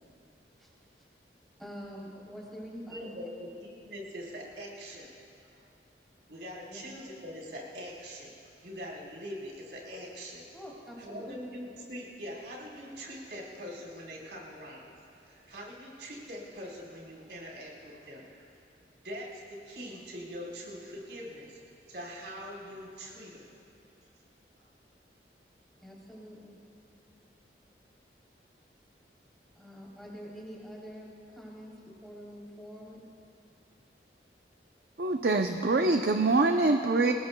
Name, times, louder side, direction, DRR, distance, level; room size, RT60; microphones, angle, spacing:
voice 1, 1.6-3.2 6.7-6.8 10.5-11.4 25.8-26.6 29.6-33.0, equal, ahead, -6 dB, 3.4 m, -45 dB
voice 2, 2.8-5.2 5.5-5.7 6.3-8.3 8.6-10.4 11.0-18.5 19.0-21.6 21.9-23.5 24.6-24.7, equal, 80° right, -3 dB, 4.2 m, -43 dB
voice 3, 35.0-37.1, right 3 dB, 60° right, 4 dB, 0.6 m, -24 dB
27.0 x 20.0 x 2.3 m, 2.6 s
head